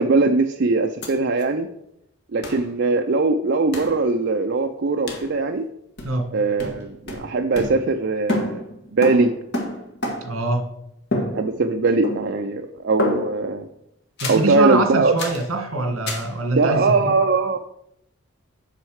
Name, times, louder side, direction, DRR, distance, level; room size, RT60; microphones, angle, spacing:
voice 1, 0.0-1.7 2.3-5.7 6.3-8.6 8.9-9.3 11.3-13.7 14.3-15.1 16.6-17.6, right 3 dB, 55° right, 5 dB, 0.4 m, -20 dB
sound 1, 1.0-1.1 1.4-1.5 2.4-2.6 3.7-4.0 5.1-5.3 6.0-6.3 6.6-8.0 8.3-10.5 11.1-11.8 12.0-12.5 13.0-13.5 14.2-14.5 15.2-15.5 16.1-16.3, left 1 dB, 50° left, 1.6 m, -29 dB
voice 2, 10.2-10.7 14.2-17.1, right 2 dB, 80° right, 4 dB, 1.7 m, -24 dB
7.6 x 6.3 x 4.8 m, 0.78 s
head